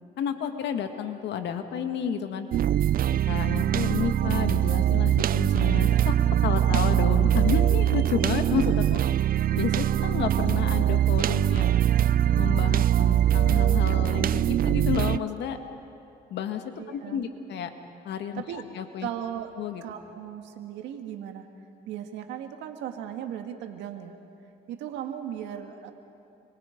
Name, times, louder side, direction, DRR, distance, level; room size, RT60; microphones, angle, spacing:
voice 1, 0.2-2.5 3.3-6.1 6.4-9.0 9.5-11.8 12.3-15.6 16.3-17.7 18.0-19.1 19.6-19.8, left 8 dB, 75° left, 6 dB, 1.9 m, -31 dB
sound 1, 2.5-15.2, right 11 dB, 55° right, 0.5 m, -22 dB
voice 2, 16.8-17.3 18.4-18.6 19.0-19.5 19.8-21.5 21.9-24.1 24.7-25.9, right 10 dB, 90° right, 5 dB, 2.0 m, -37 dB
29.5 x 23.5 x 5.3 m, 2.7 s
cardioid pair, 80°, 18 cm